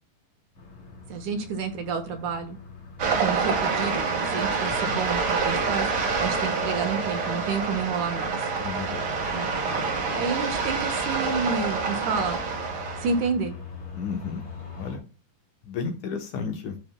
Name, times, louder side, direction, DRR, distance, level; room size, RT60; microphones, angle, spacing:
sound 1, 0.6-15.0, left 5 dB, 35° left, 3.0 m, -43 dB
voice 1, 1.1-2.6 3.2-8.4 9.3-9.5 10.1-12.4 13.0-13.6, right 5 dB, 65° right, 6 dB, 2.3 m, -30 dB
sound 2, 3.0-13.3, right 5 dB, 50° right, 1.8 m, -27 dB
voice 2, 8.6-9.1 9.7-9.9 13.9-14.5 14.8-15.0 15.6-16.8, left 5 dB, 70° left, 5 dB, 2.1 m, -33 dB
13.0 x 6.0 x 2.2 m, 0.33 s
omnidirectional pair, 4.1 m